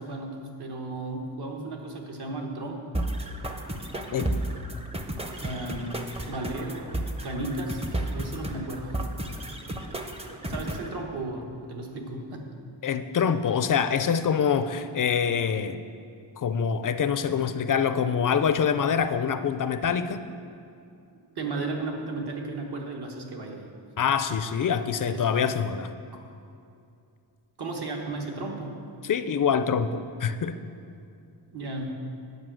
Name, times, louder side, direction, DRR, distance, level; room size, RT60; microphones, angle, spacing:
voice 1, 0.0-2.8 3.9-4.1 5.4-5.9 6.3-6.9 7.2-9.0 10.5-12.5 21.3-23.6 25.1-25.3 27.6-28.8 31.5-31.9, right 2 dB, 60° right, 1 dB, 1.4 m, -34 dB
sound 1, 2.9-10.9, right 1 dB, 15° right, 0.6 m, -33 dB
voice 2, 12.8-15.8 16.4-20.2 24.0-25.9 29.0-30.6, left 7 dB, 45° left, 11 dB, 0.5 m, -25 dB
9.8 x 5.3 x 7.5 m, 2.5 s
wide cardioid pair, 135°, 44 cm